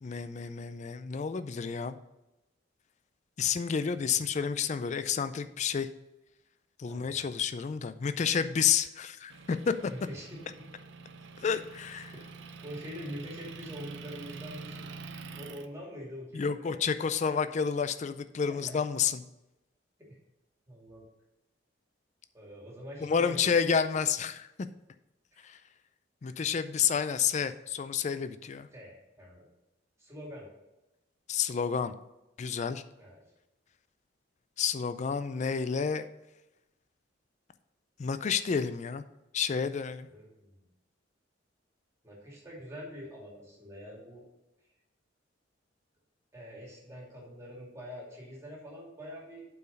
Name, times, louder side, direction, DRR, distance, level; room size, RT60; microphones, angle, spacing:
voice 1, 0.0-2.0 3.4-5.9 6.8-9.7 11.4-12.1 16.3-19.2 23.0-24.5 25.4-25.6 26.2-28.7 31.3-31.9 32.4-32.8 34.6-36.1 38.0-39.0 39.3-40.1, left 6 dB, 40° left, 11 dB, 0.4 m, -30 dB
voice 2, 6.9-7.3 9.9-10.4 12.6-14.9 15.3-16.8 18.5-18.8 20.0-20.2 20.7-21.0 22.3-23.9 25.3-25.4 26.2-26.4 28.7-29.5 30.0-30.5 33.0-33.2 40.1-40.7 42.0-44.3 46.3-49.4, equal, 15° right, -3 dB, 2.5 m, -45 dB
Motor vehicle (road) / Engine, 9.3-15.7, right 4 dB, 70° right, 0.6 m, -46 dB
8.2 x 4.7 x 5.3 m, 0.95 s
head